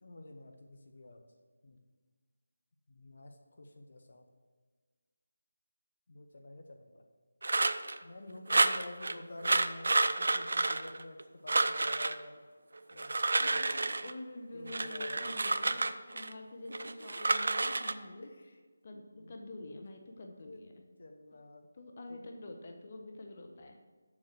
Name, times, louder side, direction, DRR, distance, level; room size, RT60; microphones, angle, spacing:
voice 1, 0.0-1.3 1.6-1.8 2.9-4.3 6.1-7.0 8.0-12.4 12.9-13.1 13.4-14.0 14.5-16.0 17.0-17.2 18.2-18.6 18.9-19.3 19.7-20.0 20.4-20.7 21.0-21.7 22.1-22.2, left 2 dB, 55° left, 4 dB, 1.0 m, -50 dB
sound 1, 7.4-8.0 8.5-9.1 9.4-11.2 11.5-12.2 12.9-14.1 14.7-16.3 16.7-17.9, right 2 dB, 65° right, 0.5 m, -30 dB
voice 2, 13.4-15.8 16.1-18.3 18.8-20.8 21.7-23.8, left 2 dB, 40° left, 3 dB, 1.0 m, -47 dB
7.4 x 6.5 x 6.4 m, 1.5 s
figure-of-eight pair, 170°, 0 cm